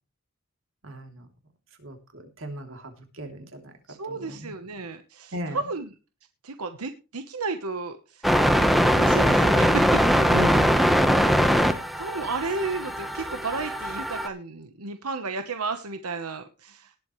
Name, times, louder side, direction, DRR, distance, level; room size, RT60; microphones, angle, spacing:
voice 1, 0.8-1.3 1.8-3.7 4.0-4.5 5.3-5.6 10.3-10.9, equal, 60° right, 5 dB, 3.0 m, -36 dB
voice 2, 3.9-5.9 6.4-8.3 9.0-10.0 12.0-16.9, right 4 dB, 90° right, 8 dB, 1.1 m, -33 dB
sound 1, 8.2-14.3, equal, ahead, 1.0 m, -21 dB
19.0 x 8.0 x 3.2 m, 0.32 s
head